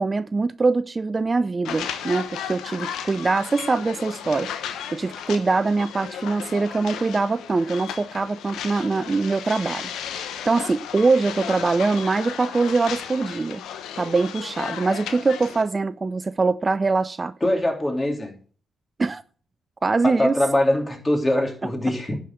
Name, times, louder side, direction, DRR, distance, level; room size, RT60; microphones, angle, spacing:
voice 1, 0.0-4.5 4.9-9.9 10.5-13.6 14.0-17.3 19.0-19.2 19.8-20.4, right 3 dB, 35° right, 0.4 m, -23 dB
sound 1, 1.6-15.6, left 9 dB, 75° left, 1.0 m, -34 dB
voice 2, 17.4-18.3 20.0-22.2, left 1 dB, 25° left, 3.2 m, -22 dB
11.0 x 5.1 x 6.3 m
hypercardioid pair, 50°, 0 cm